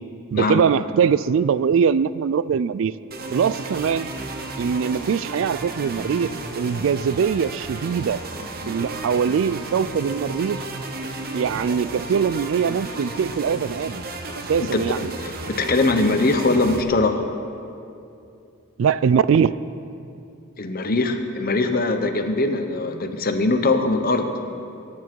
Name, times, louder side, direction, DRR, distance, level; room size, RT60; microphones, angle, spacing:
voice 1, 0.3-2.9 3.3-4.1 4.6-6.3 6.6-8.2 8.7-10.6 11.3-14.0 14.5-15.1 18.8-19.6, right 7 dB, 60° right, 17 dB, 0.3 m, -22 dB
sound 1, 3.1-16.8, right 2 dB, 40° right, 0.9 m, -33 dB
voice 2, 15.2-17.2 20.6-24.3, left 2 dB, 40° left, 6 dB, 1.0 m, -21 dB
21.5 x 9.8 x 4.7 m, 2.6 s
head